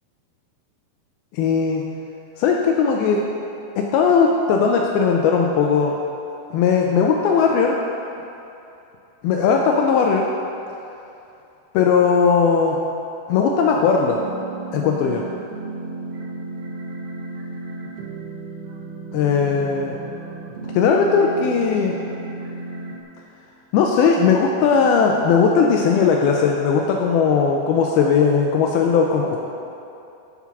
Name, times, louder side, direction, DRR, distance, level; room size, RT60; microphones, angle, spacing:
voice 1, 1.3-1.8 2.4-3.2 3.8-6.0 6.5-7.8 9.2-10.3 11.7-12.8 13.3-14.2 14.7-15.2 19.1-20.0 20.7-22.0 23.7-29.4, left 6 dB, 85° left, 1 dB, 2.2 m, -18 dB
sound 1, 14.1-23.0, right 3 dB, 85° right, 3.2 m, -34 dB
9.5 x 5.8 x 6.0 m, 2.8 s
omnidirectional pair, 4.9 m